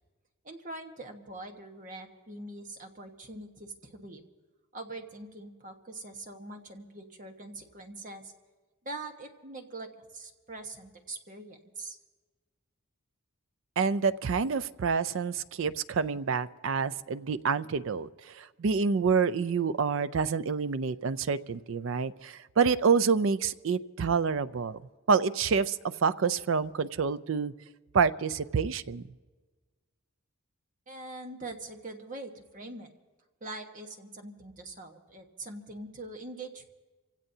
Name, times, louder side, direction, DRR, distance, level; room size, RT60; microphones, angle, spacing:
voice 1, 0.4-4.2 4.7-8.3 8.8-12.0 30.9-32.9 33.4-36.6, right 2 dB, 35° right, 4 dB, 1.3 m, -43 dB
voice 2, 13.8-24.8 25.1-27.5 27.9-29.0, right 5 dB, 60° right, 16 dB, 0.4 m, -27 dB
28.0 x 16.5 x 2.8 m, 1.3 s
head